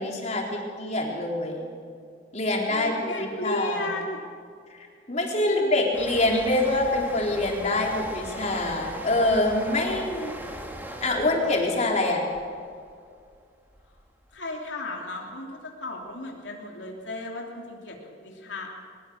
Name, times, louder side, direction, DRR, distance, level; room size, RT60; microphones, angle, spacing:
voice 1, 0.0-1.7 2.3-2.9 3.2-3.9 4.7-10.3 11.0-12.2, left 2 dB, 40° left, 0 dB, 3.9 m, -25 dB
voice 2, 2.7-4.2 5.4-6.0 14.3-18.7, left 2 dB, 80° left, 0 dB, 2.9 m, -35 dB
sound 1, 5.9-13.4 13.7-14.0, equal, 10° right, 2.3 m, -40 dB
21.5 x 21.0 x 6.4 m, 2.2 s
head